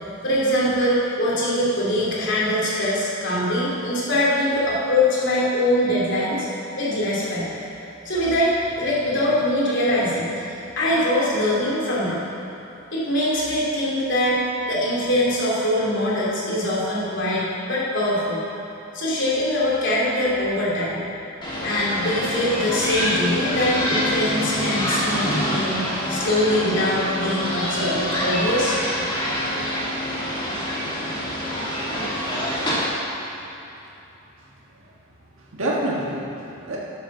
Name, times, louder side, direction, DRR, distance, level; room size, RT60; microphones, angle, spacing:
voice 1, 0.2-6.5 6.8-7.5 8.0-12.2 12.9-14.4 14.7-18.4 18.9-21.1 21.6-25.8 26.1-28.8, left 1 dB, 60° left, -6 dB, 3.0 m, -23 dB
sound 1, 21.4-32.8, equal, 25° left, 2.3 m, -26 dB
voice 2, 31.2-31.5 32.3-32.5 33.4-33.5 34.4-35.0 35.3-36.8, right 1 dB, 75° right, -5 dB, 1.6 m, -30 dB
12.5 x 7.3 x 6.1 m, 2.9 s
head